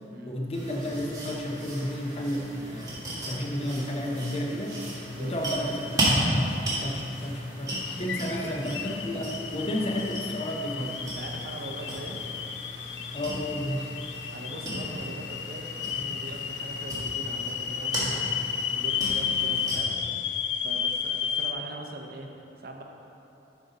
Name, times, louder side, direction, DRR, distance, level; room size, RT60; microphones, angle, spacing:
voice 1, 0.2-4.8 5.2-11.0 13.1-13.9, equal, 35° left, 0 dB, 0.7 m, -32 dB
sound 1, 0.5-19.8, right 1 dB, 20° right, 1.6 m, -34 dB
sound 2, 7.7-21.5, left 7 dB, 75° left, 0.4 m, -33 dB
voice 2, 8.3-8.9 11.2-12.3 14.3-18.4 18.7-20.0 20.6-22.3 22.6-22.8, right 2 dB, 55° right, 2 dB, 0.6 m, -41 dB
8.1 x 5.4 x 3.9 m, 2.9 s
head